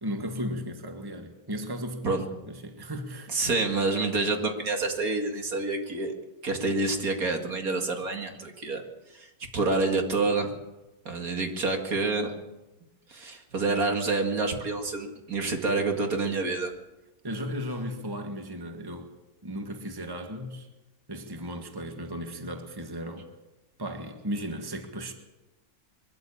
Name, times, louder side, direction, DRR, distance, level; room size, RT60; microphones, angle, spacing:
voice 1, 0.0-3.5 17.2-19.1 19.4-20.7 21.1-23.3 23.8-25.1, equal, 15° right, 1.7 m, -35 dB
voice 2, 3.3-6.1 6.4-8.8 9.1-9.3 9.5-10.5 11.1-12.3 13.1-16.7, right 3 dB, 65° right, 2.5 m, -28 dB
22.5 x 13.5 x 8.6 m
omnidirectional pair, 1.6 m